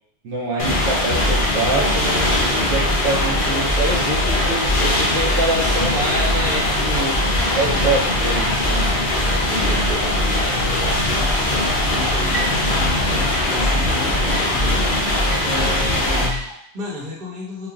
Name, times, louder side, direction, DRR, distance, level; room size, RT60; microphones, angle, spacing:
voice 1, 0.2-7.2 7.5-8.9, right 2 dB, 80° right, -5 dB, 1.0 m, -25 dB
sound 1, 0.6-16.3, left 1 dB, 55° left, 0.7 m, -21 dB
sound 2, 0.7-16.5, equal, 5° right, 0.6 m, -27 dB
voice 2, 7.6-8.0 9.2-14.8 15.4-17.7, left 3 dB, 45° right, -5 dB, 1.0 m, -33 dB
3.1 x 2.3 x 2.3 m, 0.69 s
omnidirectional pair, 1.2 m